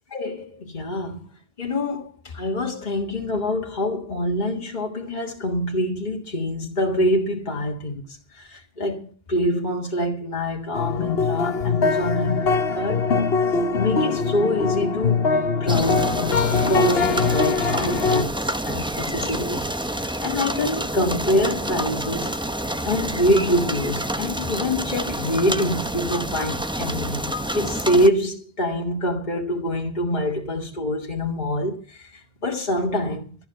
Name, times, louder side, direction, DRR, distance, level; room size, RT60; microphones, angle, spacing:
voice 1, 0.1-1.3 1.6-8.0 8.3-13.1 13.7-15.3 15.6-16.4 16.7-22.3 22.8-33.4, left 1 dB, 45° left, 1.9 m, -25 dB
sound 1, 10.7-18.2, left 5 dB, 65° left, 1.2 m, -22 dB
sound 2, 15.7-28.1, right 1 dB, 5° right, 0.8 m, -28 dB
14.5 x 6.9 x 7.7 m
omnidirectional pair, 1.1 m